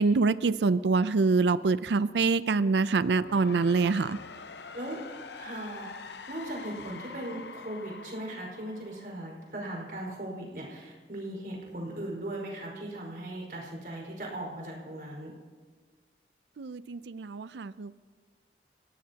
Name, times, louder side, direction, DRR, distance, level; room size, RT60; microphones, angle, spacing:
voice 1, 0.0-4.2 16.6-18.0, right 4 dB, 80° right, 15 dB, 0.5 m, -25 dB
sound 1, 2.9-9.8, left 4 dB, 80° left, 0.8 m, -45 dB
voice 2, 5.4-15.3, right 1 dB, 55° right, -2 dB, 4.9 m, -38 dB
28.0 x 17.0 x 2.9 m, 1.5 s
head